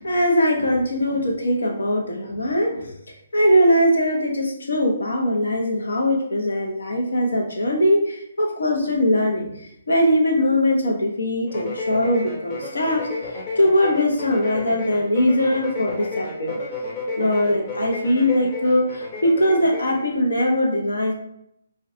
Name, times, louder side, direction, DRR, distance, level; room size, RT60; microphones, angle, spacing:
voice 1, 0.0-2.9 3.3-13.1 13.6-16.6 17.1-21.1, left 1 dB, 85° left, 1 dB, 0.8 m, -21 dB
sound 1, 11.5-20.0, left 2 dB, 30° left, 0.7 m, -32 dB
3.7 x 2.2 x 2.7 m, 0.76 s
hypercardioid pair, 150°, 0 cm